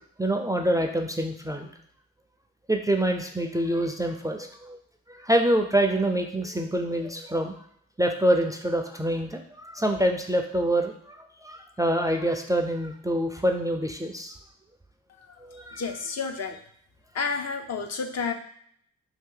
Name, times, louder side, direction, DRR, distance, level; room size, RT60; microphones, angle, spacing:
voice 1, 0.0-1.7 2.7-4.8 5.1-7.5 8.0-14.3 15.4-15.8, right 1 dB, 10° right, 4 dB, 0.4 m, -26 dB
voice 2, 15.8-16.6 17.1-18.3, left 5 dB, 45° left, 5 dB, 0.5 m, -30 dB
2.8 x 2.7 x 3.7 m, 0.66 s
supercardioid pair, 40°, 35 cm